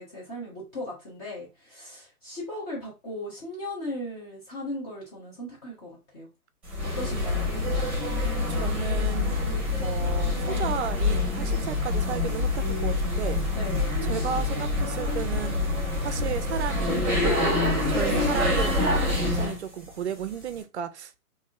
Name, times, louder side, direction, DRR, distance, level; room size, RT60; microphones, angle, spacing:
voice 1, 0.0-6.3 6.8-7.4 13.5-14.0, left 1 dB, 25° left, 0.8 m, -37 dB
sound 1, 6.7-19.6, left 2 dB, 5° right, 1.2 m, -26 dB
voice 2, 8.5-9.4 9.8-13.4 14.0-15.5 16.0-21.2, right 8 dB, 50° right, 0.4 m, -33 dB
3.4 x 2.7 x 2.3 m
hypercardioid pair, 145°, 45 cm